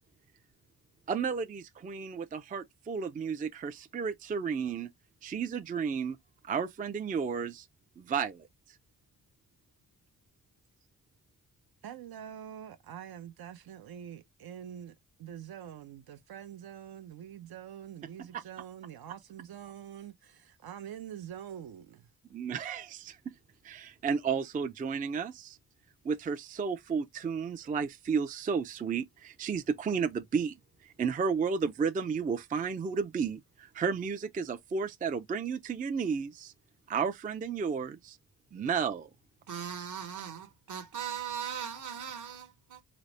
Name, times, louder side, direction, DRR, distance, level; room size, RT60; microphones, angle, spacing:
voice 1, 1.1-4.9 5.2-6.2 6.4-7.7 8.0-8.8 18.3-18.4 22.3-23.2 23.6-25.6 26.0-30.6 30.8-36.5 36.9-38.2 38.5-39.1, right 6 dB, 25° right, 0.3 m, -32 dB
voice 2, 11.8-14.9 15.2-22.1, right 10 dB, 70° right, 0.6 m, -45 dB
voice 3, 39.5-42.8, right 8 dB, 50° right, 1.1 m, -39 dB
3.9 x 2.1 x 3.1 m
cardioid pair, 100°, 38 cm